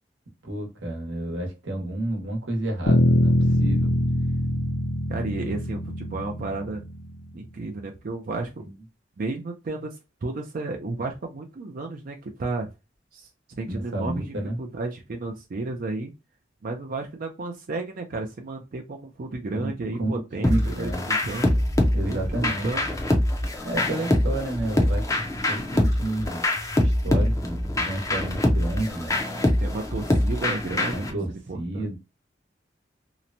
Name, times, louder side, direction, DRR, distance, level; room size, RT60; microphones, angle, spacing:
voice 1, 0.4-3.9 8.6-8.7 13.7-14.6 19.5-19.7 20.0-20.1 20.5-21.1 21.9-22.7 23.6-26.4 26.8-29.1 30.9-32.0, right 1 dB, 80° right, 1.0 m, -30 dB
Bass guitar, 2.9-7.3, left 1 dB, 65° left, 0.6 m, -23 dB
voice 2, 5.1-6.8 7.3-8.7 9.2-12.7 13.1-13.3 13.6-16.1 16.6-21.6 22.0-23.1 29.6-31.1 31.5-31.9, right 3 dB, 50° right, 0.4 m, -33 dB
sound 1, 20.4-31.1, left 1 dB, 20° left, 0.5 m, -24 dB
2.9 x 2.1 x 2.5 m
head